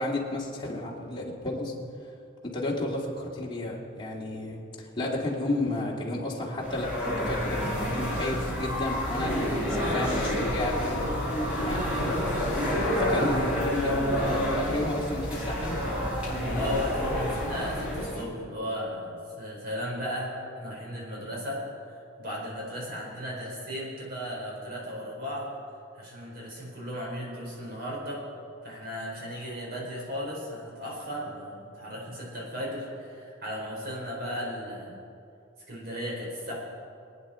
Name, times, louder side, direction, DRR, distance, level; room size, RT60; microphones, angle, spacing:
voice 1, 0.0-1.7 2.5-15.7, left 2 dB, 25° left, -3 dB, 2.5 m, -32 dB
sound 1, 6.6-18.2, equal, 5° right, 4.6 m, -29 dB
voice 2, 16.5-25.5 25.9-28.3 28.6-35.0 35.7-36.5, equal, 50° right, -4 dB, 4.6 m, -35 dB
25.0 x 9.5 x 4.4 m, 2.5 s
head